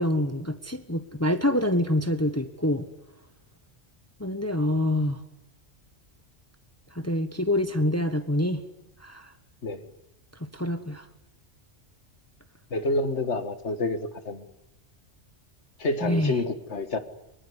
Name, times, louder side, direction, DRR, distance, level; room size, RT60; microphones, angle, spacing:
voice 1, 0.0-2.9 4.2-5.2 6.9-8.6 9.0-9.3 10.4-11.1 16.0-16.3, left 1 dB, 15° left, 9 dB, 1.2 m, -26 dB
voice 2, 12.7-14.5 15.8-17.0, left 2 dB, 85° left, 10 dB, 2.0 m, -28 dB
24.5 x 23.0 x 9.8 m, 0.87 s
omnidirectional pair, 1.1 m